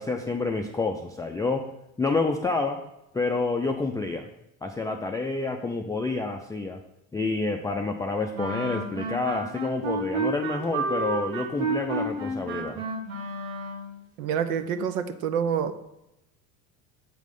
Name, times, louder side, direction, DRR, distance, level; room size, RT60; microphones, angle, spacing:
voice 1, 0.0-1.7 2.0-2.8 3.1-4.3 4.6-6.8 7.1-12.8, left 3 dB, 10° left, 3 dB, 0.3 m, -28 dB
sound 1, 8.3-14.0, right 3 dB, 60° right, 1.4 m, -31 dB
voice 2, 14.2-15.7, right 7 dB, 90° right, 11 dB, 0.7 m, -27 dB
7.6 x 3.1 x 5.2 m, 0.86 s
supercardioid pair, 90°, 41 cm